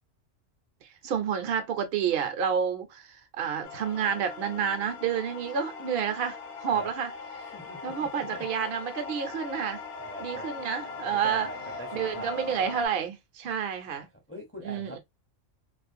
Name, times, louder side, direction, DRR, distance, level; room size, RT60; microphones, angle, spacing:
voice 1, 1.0-7.1 7.8-9.8 10.2-11.5 11.9-14.1 14.6-15.0, right 7 dB, 60° right, 0.7 m, -29 dB
sound 1, 3.6-12.9, left 4 dB, 60° left, 0.8 m, -40 dB
voice 2, 7.5-8.5 10.0-10.6 11.1-12.3 13.9-15.0, right 1 dB, 15° left, 0.5 m, -43 dB
2.4 x 2.1 x 2.5 m
omnidirectional pair, 1.3 m